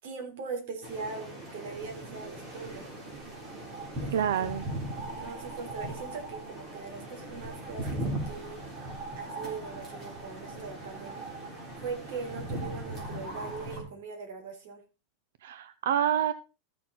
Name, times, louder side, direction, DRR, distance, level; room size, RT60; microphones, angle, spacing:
voice 1, 0.0-2.9 3.9-4.5 5.1-8.6 9.1-11.3 11.8-14.8, right 4 dB, 60° right, 4 dB, 3.5 m, -40 dB
sound 1, 0.8-13.8, right 1 dB, 25° right, 3.4 m, -39 dB
voice 2, 4.1-4.6 15.4-16.3, right 9 dB, 90° right, 13 dB, 0.6 m, -27 dB
13.5 x 6.8 x 4.0 m, 0.31 s
supercardioid pair, 175°, 0 cm